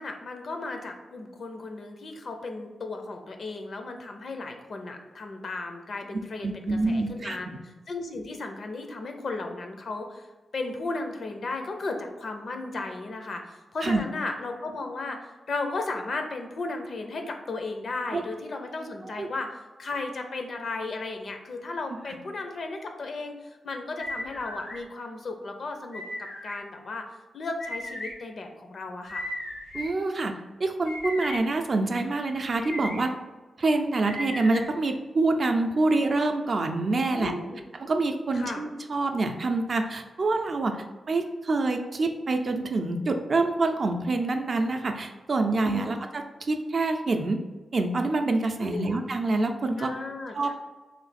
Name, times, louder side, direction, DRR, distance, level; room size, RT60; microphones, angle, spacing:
voice 1, 0.0-7.5 7.9-10.3 10.5-19.5 19.8-26.0 26.4-27.1 27.3-29.3 37.1-37.6 38.3-38.6 45.6-46.0 48.6-49.0 49.8-50.5, left 3 dB, 60° left, 4 dB, 0.5 m, -35 dB
voice 2, 6.4-7.4 13.8-14.0 18.1-18.2 19.0-19.3 29.7-30.3 30.6-33.1 33.6-37.3 37.7-47.4 47.7-49.9 50.3-50.5, right 2 dB, 50° right, 5 dB, 0.4 m, -26 dB
sound 1, 24.0-24.8 25.9-26.6 27.6-28.1 29.1-29.9 30.8-31.4 32.4-33.0 34.0-34.6, left 1 dB, 75° left, 0.9 m, -36 dB
3.2 x 2.7 x 4.1 m, 1.2 s
wide cardioid pair, 110°, 0 cm